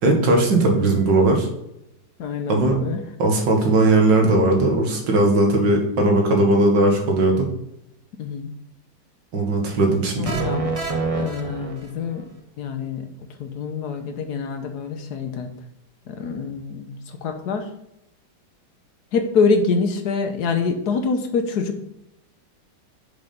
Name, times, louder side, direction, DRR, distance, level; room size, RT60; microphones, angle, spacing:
voice 1, 0.0-1.5 2.5-2.8 3.2-7.5 9.3-10.4, right 2 dB, 85° right, 2 dB, 2.1 m, -18 dB
voice 2, 2.2-3.0 8.2-8.5 10.2-10.6 11.1-12.2 12.6-13.1 13.4-15.5 16.1-16.9 17.2-17.7 19.1-21.8, left 4 dB, 65° left, 6 dB, 1.3 m, -25 dB
sound 1, 10.2-12.2, right 3 dB, 45° right, 0.4 m, -27 dB
6.0 x 5.4 x 5.3 m, 0.84 s
omnidirectional pair, 1.9 m